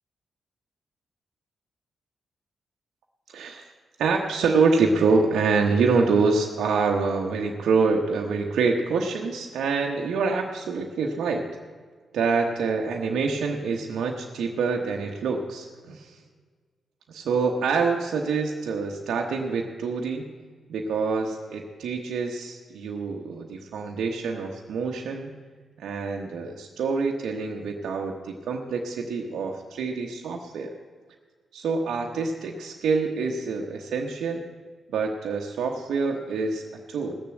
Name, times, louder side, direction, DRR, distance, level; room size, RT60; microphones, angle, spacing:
voice 1, 3.3-3.6 4.0-11.5 12.1-16.2 17.1-20.3 20.7-25.3 25.8-30.7 31.5-34.4 34.9-37.2, right 4 dB, 75° right, 1 dB, 1.1 m, -26 dB
17.5 x 7.0 x 7.9 m, 1.5 s
hypercardioid pair, 40°, 0 cm